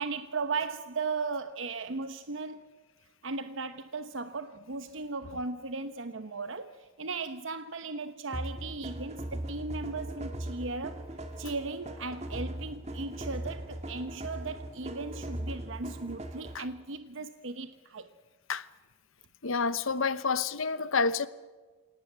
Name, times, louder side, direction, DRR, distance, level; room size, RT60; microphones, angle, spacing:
voice 1, 0.0-2.6 3.2-11.1 11.4-18.1, right 4 dB, 75° right, 1.0 m, -37 dB
sound 1, 8.3-16.8, right 1 dB, 30° right, 2.2 m, -39 dB
voice 2, 19.4-21.3, left 4 dB, 90° left, 1.1 m, -28 dB
26.5 x 18.0 x 9.4 m
head